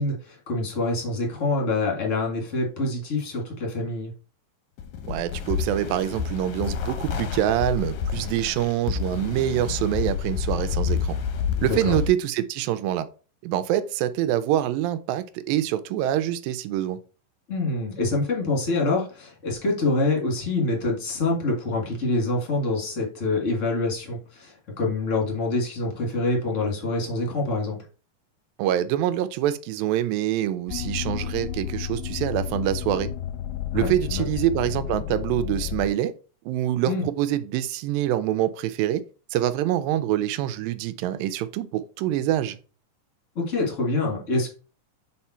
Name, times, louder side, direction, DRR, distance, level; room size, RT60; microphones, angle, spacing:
voice 1, 0.0-4.1 11.6-11.9 17.5-27.8 33.7-34.2 36.9-37.0 43.4-44.5, left 2 dB, 30° left, 1.8 m, -26 dB
sound 1, 4.8-12.1, left 7 dB, 75° left, 1.9 m, -29 dB
voice 2, 5.0-11.2 11.6-13.1 13.4-17.0 28.6-33.1 33.7-36.1 36.5-39.0 39.3-42.6, right 12 dB, 85° right, 2.3 m, -25 dB
sound 2, 30.7-35.9, left 10 dB, 90° left, 2.4 m, -31 dB
5.7 x 4.3 x 4.3 m
omnidirectional pair, 4.0 m